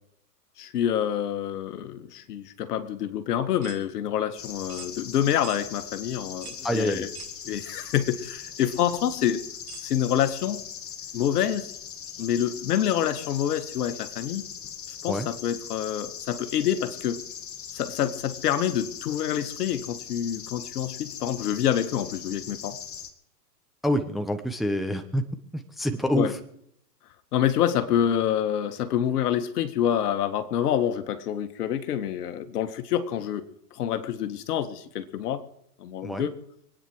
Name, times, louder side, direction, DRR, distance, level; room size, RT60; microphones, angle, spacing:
voice 1, 0.6-7.1 7.5-9.4 9.8-10.6 11.1-11.7 12.2-14.4 15.0-17.2 17.7-22.8 26.1-26.3 27.3-33.5 33.8-35.4 35.8-36.3, left 10 dB, 70° left, 2.0 m, -27 dB
sound 1, 3.6-3.8 4.7-4.9 5.4-5.6 6.4-6.7 7.1-7.4 8.2-8.3 9.7-9.9, right 9 dB, 60° right, 3.7 m, -43 dB
sound 2, 4.4-23.1, left 8 dB, 25° left, 2.3 m, -40 dB
voice 2, 6.6-7.1 15.1-15.3 23.8-25.2 25.5-26.4 36.0-36.3, equal, ahead, 1.0 m, -27 dB
25.5 x 9.5 x 4.8 m
hypercardioid pair, 120°, 49 cm